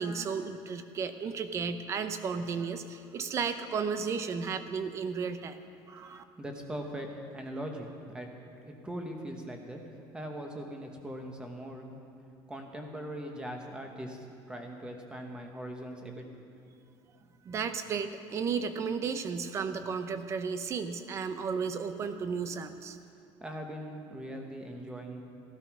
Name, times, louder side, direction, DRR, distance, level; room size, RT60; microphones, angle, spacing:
voice 1, 0.0-5.6 5.9-6.2 17.4-23.0, right 5 dB, 30° right, 10 dB, 0.7 m, -34 dB
voice 2, 6.4-7.1 7.3-8.3 8.6-9.8 10.1-12.0 12.5-16.3 23.4-25.2, right 1 dB, 10° right, 3 dB, 1.3 m, -40 dB
15.0 x 12.5 x 6.1 m, 2.4 s
cardioid pair, 175°, 9 cm